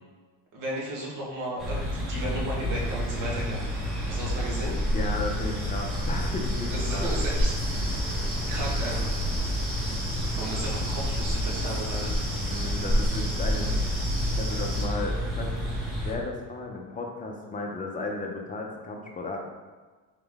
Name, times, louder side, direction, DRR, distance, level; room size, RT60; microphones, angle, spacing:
voice 1, 0.5-3.8 4.1-4.8 6.7-8.0 8.5-9.2 10.4-12.2, right 1 dB, 65° right, -4 dB, 1.4 m, -35 dB
sound 1, 1.6-16.1, equal, ahead, 0.9 m, -30 dB
sound 2, 2.7-14.9, equal, 30° right, 1.0 m, -32 dB
voice 2, 4.9-7.0 10.1-10.2 12.4-13.7 14.3-19.4, left 2 dB, 25° left, 1 dB, 0.6 m, -34 dB
4.0 x 3.8 x 3.5 m, 1.4 s
cardioid pair, 150°, 33 cm